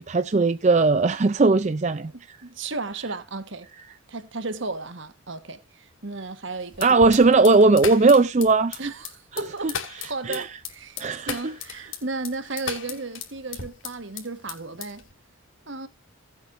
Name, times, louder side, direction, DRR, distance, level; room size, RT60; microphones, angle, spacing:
voice 1, 0.0-2.4 6.8-8.8 9.3-9.7 10.2-10.5 11.0-11.5, right 3 dB, 35° right, 0.4 m, -19 dB
voice 2, 2.0-3.7 4.1-6.9 8.8-11.0 11.3-15.1 15.7-15.9, right 3 dB, 60° right, 1.3 m, -34 dB
sound 1, 6.7-14.2 14.5-15.1, left 7 dB, 65° left, 2.6 m, -35 dB
16.5 x 8.3 x 2.6 m
head